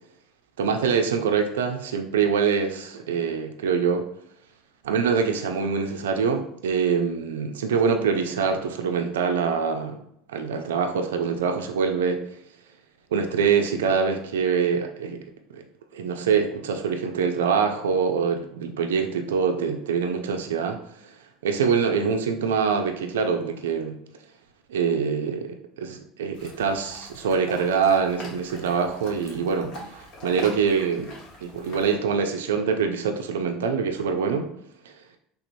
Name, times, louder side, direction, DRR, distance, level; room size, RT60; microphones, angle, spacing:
voice 1, 0.6-4.0 4.8-10.0 10.3-12.2 13.1-15.2 15.5-15.6 15.9-20.8 21.0-21.1 21.4-24.0 24.7-31.1 31.4-34.5 34.9-35.0, right 6 dB, 85° right, 5 dB, 0.3 m, -24 dB
sound 1, 26.3-32.0, left 1 dB, 60° left, 1.2 m, -43 dB
3.3 x 3.0 x 2.5 m, 0.72 s
hypercardioid pair, 85°, 0 cm